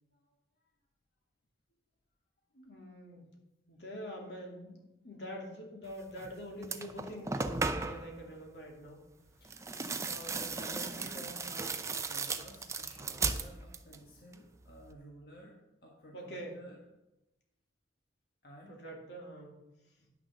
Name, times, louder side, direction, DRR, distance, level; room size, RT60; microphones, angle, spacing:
voice 1, 2.5-3.3 3.7-4.8 5.0-9.0 10.0-10.5 16.1-16.6 18.7-19.6, equal, 80° left, 0 dB, 2.6 m, -45 dB
sound 1, 6.2-6.3 6.6-8.1 9.4-14.0 14.3-14.9, right 4 dB, 15° right, 0.5 m, -36 dB
voice 2, 9.4-10.0 10.4-16.8 18.4-18.8 20.0-20.1, equal, 55° left, -2 dB, 1.5 m, -52 dB
9.9 x 6.5 x 6.4 m, 0.95 s
head